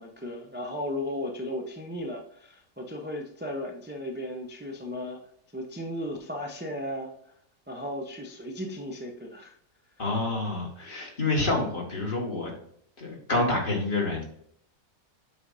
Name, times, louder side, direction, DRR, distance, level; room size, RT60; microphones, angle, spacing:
voice 1, 0.0-5.2 5.5-7.1 7.7-9.6, left 1 dB, 15° right, 1 dB, 0.4 m, -35 dB
voice 2, 10.0-12.5 13.0-14.2, left 2 dB, 35° left, -2 dB, 1.9 m, -28 dB
7.7 x 4.9 x 2.6 m, 0.68 s
omnidirectional pair, 1.5 m